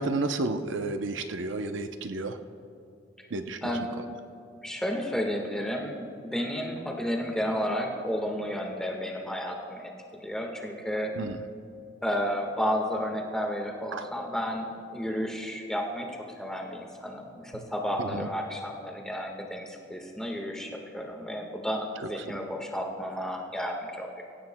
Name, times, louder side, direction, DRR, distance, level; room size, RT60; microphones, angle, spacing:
voice 1, 0.0-2.4 3.3-3.7 11.2-11.4 13.9-14.1 17.5-17.6 18.0-18.3, right 2 dB, 75° right, 7 dB, 0.6 m, -31 dB
voice 2, 4.6-11.1 12.0-16.1 16.4-24.2, equal, 5° left, 0 dB, 1.4 m, -32 dB
25.5 x 15.5 x 2.2 m, 2.6 s
head